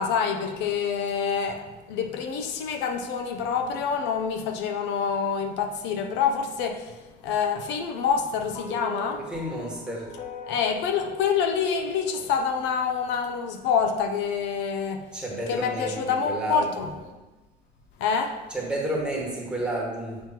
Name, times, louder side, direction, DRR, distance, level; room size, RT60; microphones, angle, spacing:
voice 1, 0.0-9.2 10.5-15.0 15.5-16.9 18.0-18.4, left 6 dB, 70° left, 0.6 m, -27 dB
sound 1, 8.5-13.0, left 2 dB, 40° left, 1.1 m, -42 dB
voice 2, 9.3-10.0 15.1-16.9 18.5-20.2, right 1 dB, 5° right, 1.3 m, -31 dB
7.4 x 3.0 x 5.8 m
cardioid pair, 160°, 19 cm